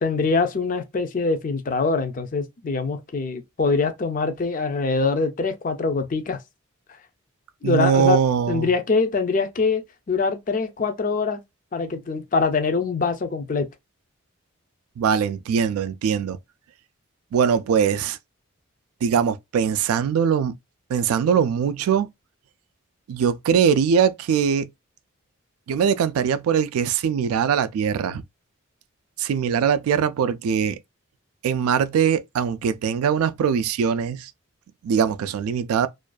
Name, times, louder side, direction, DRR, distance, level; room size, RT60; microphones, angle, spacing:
voice 1, 0.0-6.4 7.6-8.2 8.5-9.8 10.1-11.4 11.7-13.7, left 4 dB, 40° left, 0.4 m, -23 dB
voice 2, 7.6-8.7 15.0-16.4 17.3-18.2 19.0-20.6 20.9-22.1 23.1-24.7 25.7-28.2 29.2-30.8 31.4-34.3 34.8-35.9, right 7 dB, 85° right, 0.3 m, -21 dB
2.5 x 2.2 x 2.3 m
head